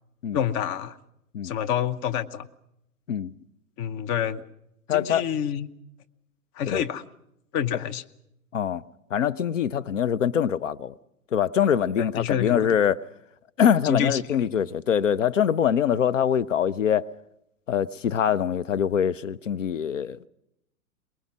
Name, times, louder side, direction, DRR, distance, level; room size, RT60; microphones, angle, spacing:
voice 1, 0.3-1.0 1.4-2.5 3.8-4.4 4.9-5.7 6.6-7.0 7.5-8.0 12.2-12.7 13.8-14.2, left 9 dB, 25° left, 0.8 m, -27 dB
voice 2, 4.9-5.2 6.7-6.8 8.5-8.8 9.1-10.9 11.3-13.0 13.6-17.1 17.7-20.2, left 8 dB, 60° left, 0.7 m, -24 dB
23.0 x 21.5 x 6.2 m
figure-of-eight pair, 110°, 44 cm